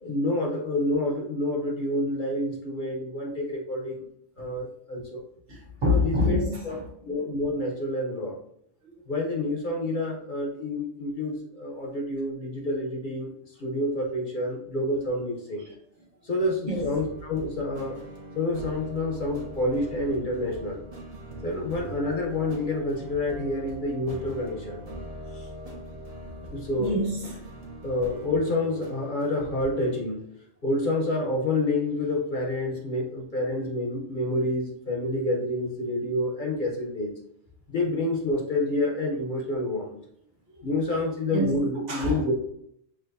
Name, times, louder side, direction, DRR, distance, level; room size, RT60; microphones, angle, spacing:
voice 1, 0.0-4.0 4.4-5.2 5.8-6.4 6.6-6.8 7.0-8.4 9.1-13.3 13.6-15.6 16.3-18.0 18.3-20.8 21.4-24.8 25.4-25.5 26.5-26.9 27.8-30.2 30.6-37.1 37.7-39.9 40.6-42.3, left 1 dB, 45° left, -1 dB, 0.9 m, -28 dB
voice 2, 5.5-6.9 15.6-15.8 16.6-16.9 26.8-27.5 40.6-40.7 41.3-41.6 41.9-42.2, left 2 dB, 70° right, -2 dB, 1.5 m, -27 dB
sound 1, 16.7-30.0, right 1 dB, 35° right, 0.9 m, -41 dB
6.4 x 2.9 x 2.6 m, 0.72 s
omnidirectional pair, 1.3 m